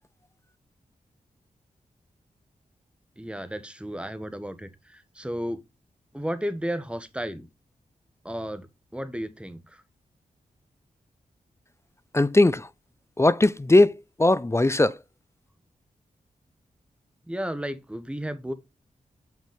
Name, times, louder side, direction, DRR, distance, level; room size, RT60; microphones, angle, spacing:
voice 1, 3.2-5.6 6.1-7.5 8.2-8.7 8.9-9.8 17.3-18.5, equal, 5° right, 1.3 m, -33 dB
voice 2, 12.1-12.7 13.2-15.0, left 2 dB, 15° left, 0.5 m, -19 dB
6.1 x 5.4 x 5.1 m
cardioid pair, 40°, 15 cm